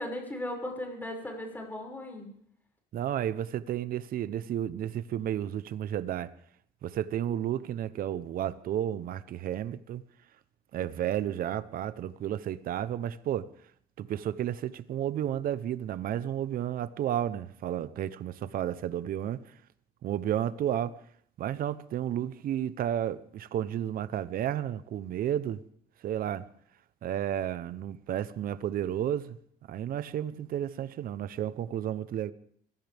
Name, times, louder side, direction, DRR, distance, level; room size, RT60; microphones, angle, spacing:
voice 1, 0.0-2.3, left 1 dB, 10° left, 6.0 m, -37 dB
voice 2, 2.9-6.3 6.8-10.0 10.7-13.5 14.0-19.5 20.0-20.9 21.4-25.6 26.0-26.5 27.0-29.4 29.7-32.3, right 10 dB, 60° right, 0.9 m, -32 dB
24.0 x 16.5 x 3.5 m
cardioid pair, 110°, 17 cm